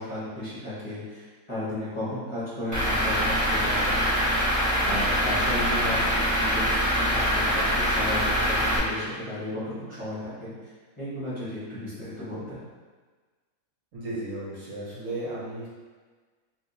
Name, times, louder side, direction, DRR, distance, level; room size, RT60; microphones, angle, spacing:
voice 1, 0.0-4.3 4.8-10.7 11.0-12.7, left 1 dB, 20° left, -12 dB, 1.1 m, -34 dB
Truck / Idling, 2.7-8.8, equal, 20° right, 0.5 m, -24 dB
voice 2, 13.9-15.7, right 1 dB, 65° right, -6 dB, 1.1 m, -34 dB
3.5 x 2.7 x 2.7 m, 1.4 s
omnidirectional pair, 1.5 m